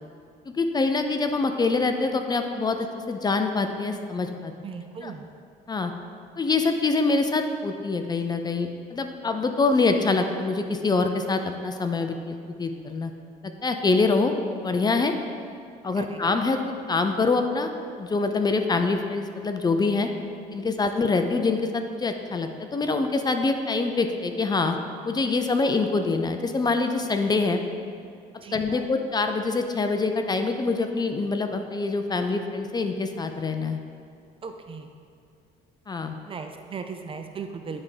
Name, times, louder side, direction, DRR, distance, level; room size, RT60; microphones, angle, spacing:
voice 1, 0.5-4.5 5.0-5.1 5.7-5.9 6.4-13.1 13.4-14.3 14.6-15.1 15.8-16.6 16.9-17.7 18.0-20.1 20.5-24.8 25.0-27.6 28.5-33.8 35.9-36.2, left 3 dB, 25° left, 6 dB, 0.5 m, -25 dB
voice 2, 4.6-5.3 16.0-16.2 20.9-21.1 28.4-28.8 34.4-34.9 36.2-37.8, right 5 dB, 30° right, 6 dB, 0.5 m, -37 dB
9.7 x 3.6 x 5.0 m, 2.4 s
cardioid pair, 110°, 17 cm